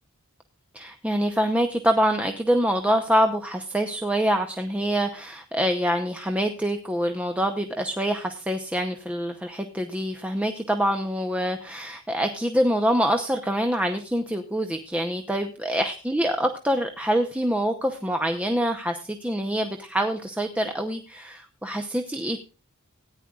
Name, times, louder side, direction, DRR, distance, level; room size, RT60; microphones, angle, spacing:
voice 1, 0.7-22.4, equal, 5° right, 5 dB, 0.8 m, -25 dB
17.5 x 10.0 x 2.4 m, 0.34 s
head